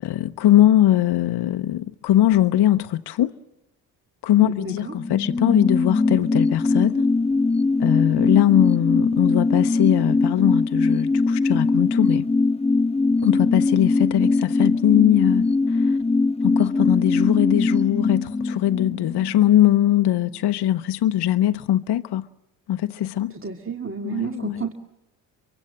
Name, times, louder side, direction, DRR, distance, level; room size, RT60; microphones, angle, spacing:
voice 1, 0.0-3.3 4.2-7.1 7.8-12.3 13.2-16.0 16.4-22.3 22.7-23.3 24.0-24.6, left 12 dB, 55° left, 0.8 m, -20 dB
voice 2, 4.4-4.9 23.3-24.7, right 6 dB, 25° right, 2.1 m, -30 dB
sound 1, 4.9-20.0 20.3-20.4, left 3 dB, 15° left, 1.1 m, -21 dB
25.0 x 23.5 x 7.5 m
hypercardioid pair, 50°, 48 cm